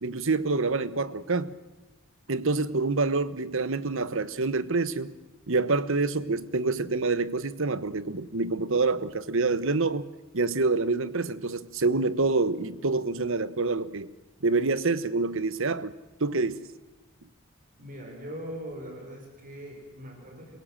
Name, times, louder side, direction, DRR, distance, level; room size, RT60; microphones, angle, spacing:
voice 1, 0.0-1.5 2.3-5.1 5.5-10.1 10.3-14.1 14.4-15.9 16.2-16.7, right 3 dB, 65° right, 15 dB, 1.2 m, -27 dB
voice 2, 17.8-20.6, equal, 40° right, 2 dB, 5.3 m, -41 dB
28.5 x 17.0 x 7.5 m, 1.1 s
head